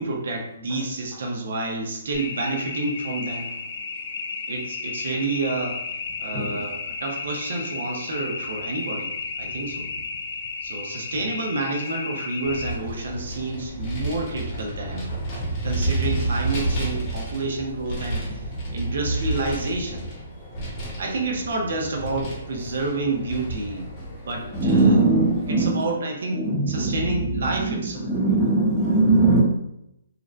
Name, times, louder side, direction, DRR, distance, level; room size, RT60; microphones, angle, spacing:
voice 1, 0.0-3.5 4.5-5.8 6.2-9.1 9.4-9.9 10.6-15.1 15.6-20.0 21.0-23.9 24.3-25.0 25.5-28.0, right 2 dB, 70° right, 1 dB, 0.6 m, -29 dB
sound 1, 2.1-12.7, left 4 dB, 50° left, 0.3 m, -33 dB
Vehicle, 12.4-25.7, right 2 dB, 25° left, 0.9 m, -31 dB
voice 2, 24.5-25.9 26.3-29.4, right 2 dB, 5° right, -7 dB, 0.7 m, -21 dB
2.5 x 2.0 x 2.4 m, 0.82 s
hypercardioid pair, 155°, 0 cm